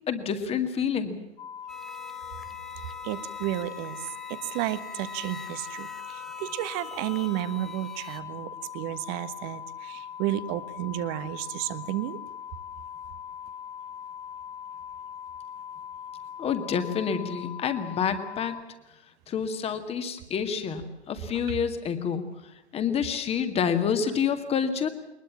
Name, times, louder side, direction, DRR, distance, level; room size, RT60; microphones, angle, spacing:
voice 1, 0.1-1.2 16.4-18.6 19.3-22.3 22.7-24.9, left 7 dB, 20° left, 9 dB, 2.1 m, -28 dB
sound 1, 1.4-18.6, left 8 dB, 50° left, 1.6 m, -41 dB
sound 2, 1.7-8.2, left 2 dB, ahead, 0.7 m, -45 dB
voice 2, 3.0-4.0 4.3-12.2, right 14 dB, 30° right, 13 dB, 1.4 m, -32 dB
22.0 x 21.0 x 7.3 m, 0.96 s
figure-of-eight pair, 110°, 33 cm